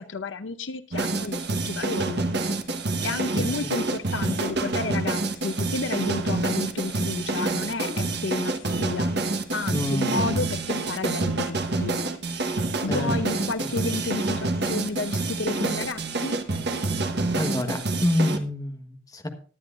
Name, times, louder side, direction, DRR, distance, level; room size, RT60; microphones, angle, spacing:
voice 1, 0.0-2.2 3.0-9.1 9.5-12.0 12.8-16.4, left 3 dB, 70° left, 11 dB, 0.7 m, -31 dB
sound 1, 0.9-18.4, right 2 dB, 55° right, 1.3 m, -27 dB
voice 2, 9.7-10.2 12.9-13.1 17.4-19.3, left 1 dB, 20° left, 5 dB, 1.2 m, -27 dB
18.5 x 10.5 x 2.5 m, 0.40 s
head